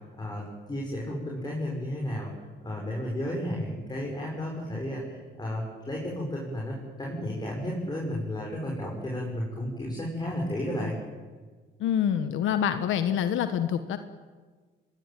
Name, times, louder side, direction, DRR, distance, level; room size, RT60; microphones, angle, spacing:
voice 1, 0.2-2.3 2.6-10.9, left 1 dB, 20° left, -3 dB, 7.0 m, -33 dB
voice 2, 11.8-14.0, left 9 dB, 85° left, 9 dB, 1.3 m, -26 dB
24.5 x 21.5 x 9.3 m, 1.4 s
cardioid pair, 90°, 20 cm